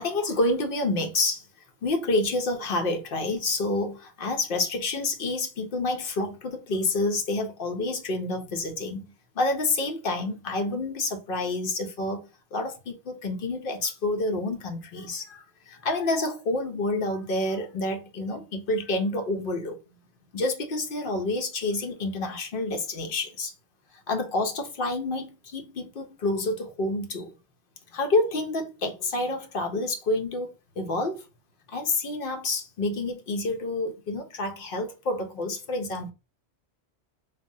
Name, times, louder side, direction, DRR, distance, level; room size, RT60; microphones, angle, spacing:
voice 1, 0.0-1.4 1.8-19.8 20.3-23.5 24.1-27.3 27.9-30.5 30.8-31.2 31.7-36.1, left 2 dB, 60° left, 0.7 m, -28 dB
3.3 x 2.1 x 2.6 m
omnidirectional pair, 1.2 m